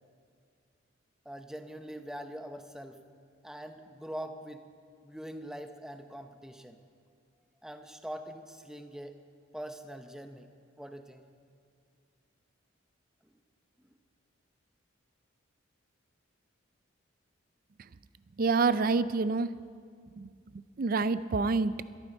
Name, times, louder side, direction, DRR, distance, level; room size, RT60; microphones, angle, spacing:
voice 1, 1.2-3.0 3.4-4.7 5.0-6.8 7.6-9.2 9.5-10.5 10.8-11.3, equal, 5° right, 6 dB, 0.8 m, -43 dB
voice 2, 18.4-19.5 20.2-20.3 20.8-21.7, right 4 dB, 45° right, 15 dB, 0.4 m, -27 dB
23.0 x 13.5 x 4.4 m, 2.2 s
head